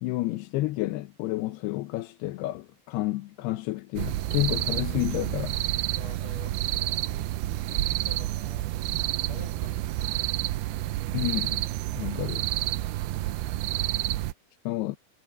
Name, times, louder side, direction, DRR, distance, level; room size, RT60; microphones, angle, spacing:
voice 1, 0.0-5.6 11.1-11.6 12.0-12.5 14.7-15.0, left 17 dB, 85° left, 2.9 m, -30 dB
sound 1, 4.0-14.3, right 16 dB, 80° right, 2.6 m, -29 dB
voice 2, 5.9-8.7 9.2-10.1, left 4 dB, 40° left, 7.8 m, -48 dB
omnidirectional pair, 4.6 m